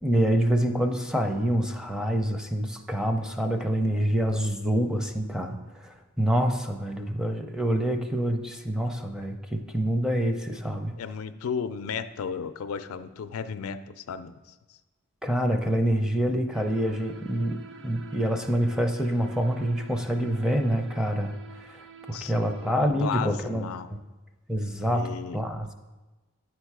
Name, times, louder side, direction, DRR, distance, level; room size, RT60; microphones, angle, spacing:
voice 1, 0.0-5.6 5.8-10.9 15.2-21.8 22.1-24.0 24.5-25.7, equal, 5° right, 5 dB, 0.5 m, -26 dB
voice 2, 11.0-14.3 22.1-22.6 23.0-23.9 24.8-25.4, left 6 dB, 70° left, 11 dB, 0.4 m, -34 dB
sound 1, 16.5-22.8, right 5 dB, 60° right, 0.6 m, -47 dB
10.5 x 4.5 x 4.7 m, 1.2 s
head